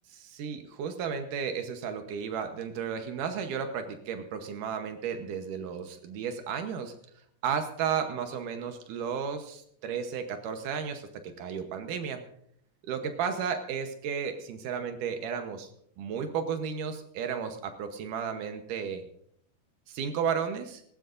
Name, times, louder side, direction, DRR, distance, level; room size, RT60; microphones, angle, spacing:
voice 1, 0.1-6.9 7.4-12.2 12.9-15.7 16.0-19.0 19.9-20.8, right 7 dB, 85° right, 6 dB, 2.6 m, -33 dB
19.0 x 18.5 x 2.6 m, 0.67 s
omnidirectional pair, 3.6 m